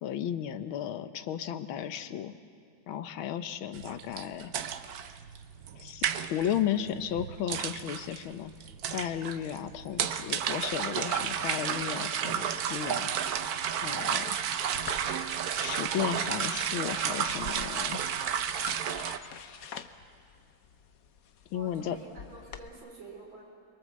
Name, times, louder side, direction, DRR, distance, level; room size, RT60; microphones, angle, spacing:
voice 1, 0.0-2.3 2.9-4.5 5.8-8.5 8.9-13.1 13.8-14.4 15.6-18.0 21.5-22.0, left 10 dB, 90° left, 11 dB, 1.7 m, -34 dB
sound 1, 3.7-19.2, right 8 dB, 60° right, 1.1 m, -32 dB
sound 2, 14.7-22.7, left 7 dB, 55° left, 1.1 m, -49 dB
voice 2, 21.5-23.4, right 3 dB, 75° right, 0 dB, 5.1 m, -49 dB
29.0 x 22.5 x 7.5 m, 2.3 s
omnidirectional pair, 2.2 m